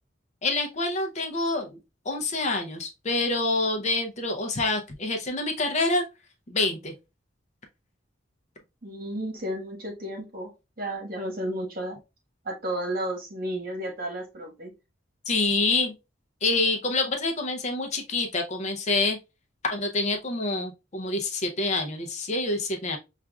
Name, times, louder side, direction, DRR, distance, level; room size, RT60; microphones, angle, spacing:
voice 1, 0.4-1.8 2.1-6.0 6.5-6.9 15.3-15.9 16.4-19.2 19.6-23.0, left 2 dB, 35° left, 0.5 m, -27 dB
voice 2, 8.8-10.5 10.8-12.0 12.4-14.7, right 1 dB, 50° right, 1.3 m, -32 dB
5.7 x 2.4 x 2.3 m
head